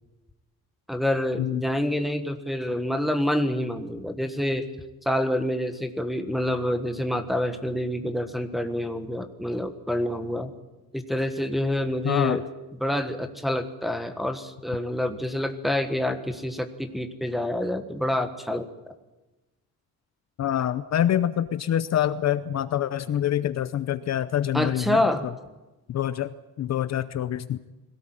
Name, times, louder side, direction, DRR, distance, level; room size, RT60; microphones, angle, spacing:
voice 1, 0.9-4.6 5.0-10.5 10.9-12.4 12.8-18.7 24.5-25.2, left 1 dB, ahead, 6 dB, 1.5 m, -27 dB
voice 2, 12.0-12.4 20.4-25.1 25.9-27.6, left 11 dB, 50° left, 12 dB, 0.8 m, -26 dB
21.5 x 17.5 x 8.9 m, 1.1 s
cardioid pair, 170°, 35 cm